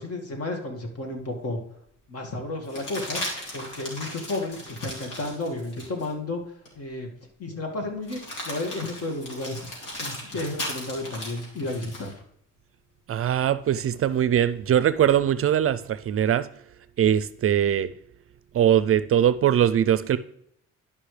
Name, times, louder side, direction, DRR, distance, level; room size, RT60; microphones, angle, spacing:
voice 1, 0.0-1.6 2.1-3.2 3.5-6.4 6.8-7.1 7.4-9.7 10.0-12.2, left 2 dB, 50° left, 2.0 m, -32 dB
sound 1, 1.1-1.2 2.6-6.1 6.6-6.8 8.0-12.1 14.3-15.2, left 1 dB, 80° left, 3.1 m, -37 dB
voice 2, 13.1-16.5 17.0-17.9 18.5-20.2, right 10 dB, 50° right, 0.5 m, -21 dB
11.5 x 5.5 x 3.3 m
cardioid pair, 90°, 30 cm